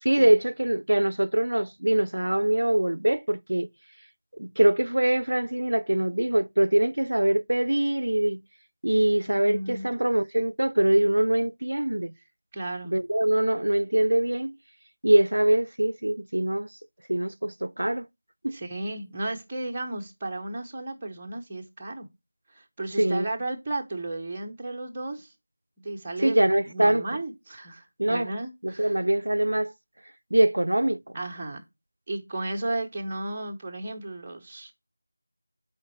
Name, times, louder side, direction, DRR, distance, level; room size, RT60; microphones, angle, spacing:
voice 1, 0.0-3.7 4.4-8.4 8.8-12.1 12.8-14.6 15.0-16.7 17.1-18.1 18.4-18.6 23.0-23.3 26.2-27.1 28.0-28.3 28.6-29.7 30.3-31.2, right 1 dB, 90° right, 0.4 m, -23 dB
voice 2, 9.3-9.9 12.5-12.9 18.5-22.1 22.5-25.3 25.8-26.4 26.7-28.9 31.1-31.6 32.1-34.7, right 2 dB, 15° right, 0.9 m, -34 dB
7.4 x 4.4 x 4.5 m
figure-of-eight pair, 175°, 0 cm